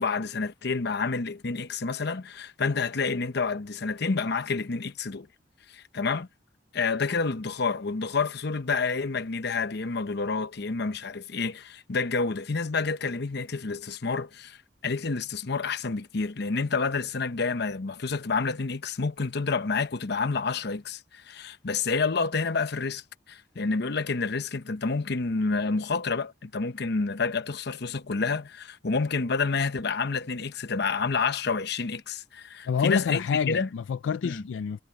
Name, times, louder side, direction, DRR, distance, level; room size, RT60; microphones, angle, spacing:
voice 1, 0.0-5.3 5.7-6.3 6.7-14.6 14.8-23.0 23.3-33.7 34.2-34.4, left 4 dB, 60° left, 0.9 m, -29 dB
voice 2, 32.7-34.8, left 6 dB, 85° left, 0.4 m, -28 dB
head